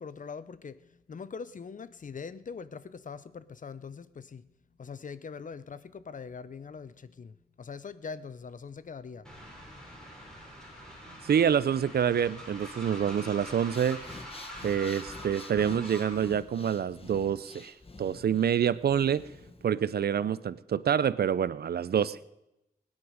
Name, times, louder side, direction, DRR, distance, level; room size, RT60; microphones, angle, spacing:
voice 1, 0.0-4.5 4.8-9.6, left 5 dB, 50° left, 15 dB, 0.7 m, -42 dB
Train, 9.2-16.3, equal, 5° left, 5.8 m, -45 dB
voice 2, 11.1-14.0 14.6-19.3 19.6-22.2, right 8 dB, 75° right, 18 dB, 0.5 m, -27 dB
Breathing, 13.6-19.6, left 3 dB, 35° left, 1.4 m, -48 dB
21.0 x 9.8 x 5.0 m, 0.87 s
wide cardioid pair, 80°, 17 cm